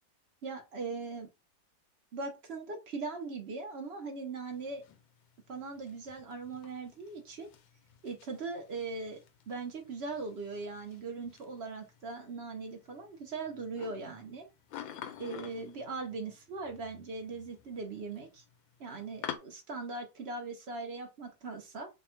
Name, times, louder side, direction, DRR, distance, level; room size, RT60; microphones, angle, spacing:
voice 1, 0.4-1.3 2.1-4.8 5.5-7.5 8.0-9.2 9.5-14.5 15.2-18.4 18.8-21.9, right 3 dB, 55° right, 3 dB, 0.7 m, -40 dB
sound 1, 4.5-19.4, left 10 dB, 85° left, 1.4 m, -50 dB
3.5 x 2.2 x 4.3 m, 0.25 s
omnidirectional pair, 2.1 m